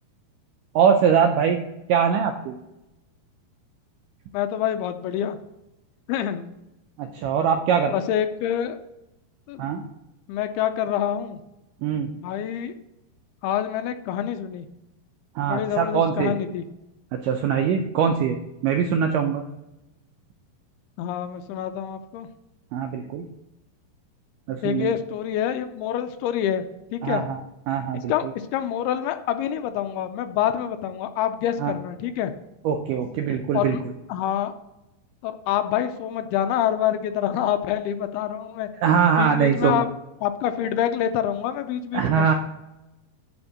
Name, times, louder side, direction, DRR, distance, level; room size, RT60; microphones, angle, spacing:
voice 1, 0.8-1.6 1.9-2.5 7.0-7.9 9.6-9.8 11.8-12.1 15.4-16.4 17.2-18.4 18.6-19.4 22.7-23.3 24.5-24.9 27.0-27.4 27.7-28.3 31.6-31.7 32.7-33.8 38.8-39.8 41.9-42.3, right 7 dB, 85° right, 4 dB, 1.9 m, -22 dB
voice 2, 4.3-5.4 6.1-6.5 7.9-8.8 9.5-9.7 10.3-11.4 12.1-12.8 13.4-14.7 15.5-16.6 21.0-22.3 24.6-26.6 26.9-27.2 28.1-32.3 33.5-33.8 34.1-34.5 35.2-38.7 39.2-39.9 40.2-42.3, left 10 dB, 85° left, 8 dB, 2.5 m, -26 dB
9.8 x 4.4 x 7.3 m, 0.93 s
omnidirectional pair, 4.6 m